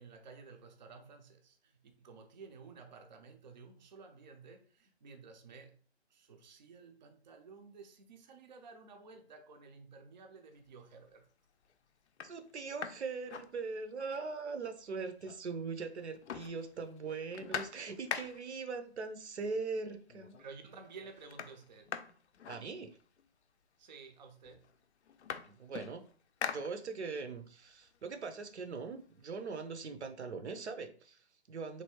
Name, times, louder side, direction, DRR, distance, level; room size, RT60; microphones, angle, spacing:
voice 1, 0.0-5.8 6.1-11.2 20.4-21.9 23.8-24.6, right 4 dB, 45° right, 0.4 m, -53 dB
sound 1, 10.7-11.1 11.6-11.7 12.1-14.1 14.5-14.6 14.8-15.7 15.9-18.7 19.6-19.7 20.1-20.6 20.8-23.2 24.0-24.1 24.4-27.3 27.7-29.4, left 7 dB, 85° left, 0.5 m, -44 dB
voice 2, 12.2-20.4 22.5-22.9 25.5-26.0 26.4-31.8, right 4 dB, 85° right, 0.7 m, -41 dB
3.3 x 2.6 x 2.8 m
hypercardioid pair, 155°, 33 cm